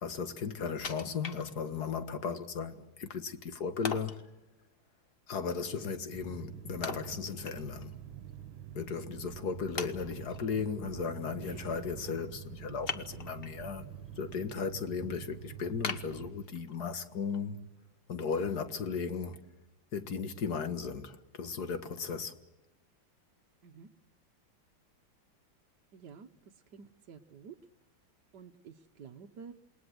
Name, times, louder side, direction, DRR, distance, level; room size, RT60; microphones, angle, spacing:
voice 1, 0.0-4.1 5.3-7.9 8.7-17.6 18.1-19.4 19.9-22.4, left 5 dB, 55° left, 2.1 m, -36 dB
Wood, 0.8-2.0 2.4-2.5 3.8-4.3 6.8-7.9 8.3-8.4 9.1-9.2 9.8-10.4 12.8-13.6 14.1-14.5 14.9-15.0 15.8-16.9 17.3-17.4, left 5 dB, 35° left, 1.1 m, -40 dB
sound 1, 6.1-16.3, right 10 dB, 90° right, 1.8 m, -46 dB
voice 2, 25.9-26.3 26.7-27.6 28.3-29.5, right 6 dB, 60° right, 1.6 m, -50 dB
28.5 x 21.0 x 7.9 m
omnidirectional pair, 2.1 m